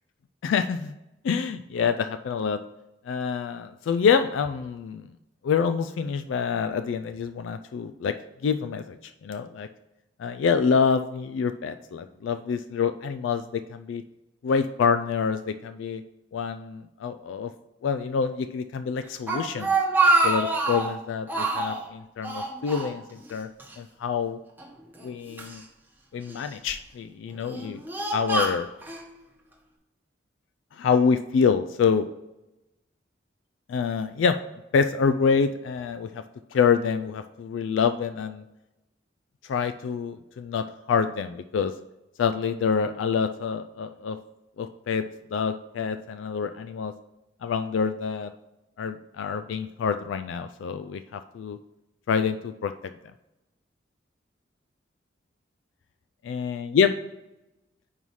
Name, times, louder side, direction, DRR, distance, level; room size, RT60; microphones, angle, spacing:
voice 1, 0.4-1.0 1.2-2.6 3.1-5.1 5.4-8.1 8.4-9.0 9.2-9.7 10.2-14.0 14.4-16.0 16.3-17.5 17.8-19.7 20.2-23.5 23.8-24.4 25.0-25.6 26.1-27.8 28.1-28.7 30.8-32.1 33.7-34.4 34.7-36.2 36.5-38.4 39.5-41.7 42.2-44.2 44.6-45.0 45.3-46.9 47.4-48.3 48.8-51.6 52.1-52.7 56.3-56.9, left 6 dB, 85° left, 10 dB, 0.3 m, -26 dB
Speech, 19.0-20.9 21.3-21.8 22.2-23.3 23.6-23.7 24.6-25.6 26.3-26.7 27.3-29.0, right 3 dB, 10° right, 0.9 m, -26 dB
5.5 x 4.7 x 5.5 m, 0.96 s
head